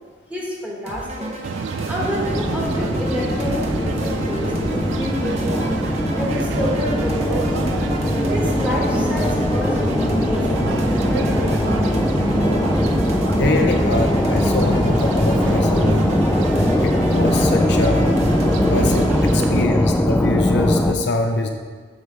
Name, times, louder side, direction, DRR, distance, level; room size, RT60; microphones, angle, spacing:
voice 1, 0.3-1.3 1.9-5.7 6.2-7.5 8.3-11.2, left 1 dB, 10° right, -4 dB, 1.4 m, -28 dB
sound 1, 0.9-19.3, right 1 dB, 35° right, 0.9 m, -34 dB
istanbul tram, 1.4-19.7, right 5 dB, 70° right, 0.3 m, -29 dB
sound 2, 2.0-20.9, left 1 dB, 10° left, 0.3 m, -20 dB
voice 2, 13.4-16.1 16.6-18.2 18.6-21.5, left 2 dB, 65° left, 4 dB, 0.6 m, -23 dB
7.9 x 3.3 x 5.3 m, 1.5 s
head